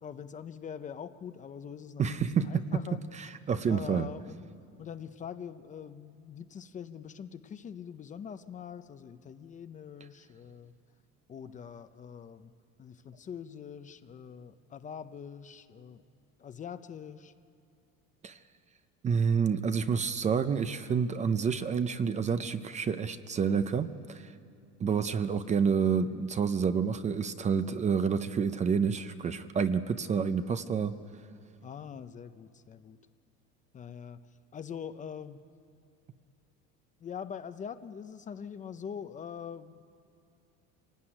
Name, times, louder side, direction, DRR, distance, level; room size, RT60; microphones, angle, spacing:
voice 1, 0.0-3.0 3.7-4.4 4.8-10.7 11.3-12.5 12.8-16.0 16.4-17.3 31.6-33.0 33.7-34.2 34.5-35.4 37.0-39.8, left 7 dB, 25° left, 11 dB, 0.6 m, -43 dB
voice 2, 2.0-2.7 3.2-4.1 18.2-18.4 19.0-24.3 24.8-31.0, right 6 dB, 25° right, 11 dB, 0.6 m, -29 dB
25.5 x 17.5 x 9.9 m, 2.4 s
cardioid pair, 155°, 30 cm